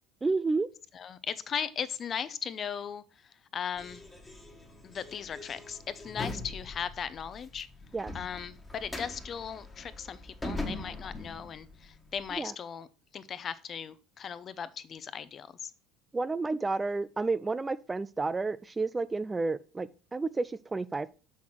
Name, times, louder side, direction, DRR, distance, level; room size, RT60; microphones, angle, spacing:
voice 1, 0.2-0.7 7.9-8.1 12.4-12.5 16.1-21.1, right 3 dB, 15° right, 0.3 m, -31 dB
voice 2, 0.9-4.0 4.8-7.7 8.1-12.9 13.1-15.7, left 7 dB, 35° left, 0.6 m, -38 dB
sound 1, 3.8-12.4, left 2 dB, 10° left, 1.5 m, -42 dB
6.1 x 5.7 x 4.6 m
cardioid pair, 120°, 0 cm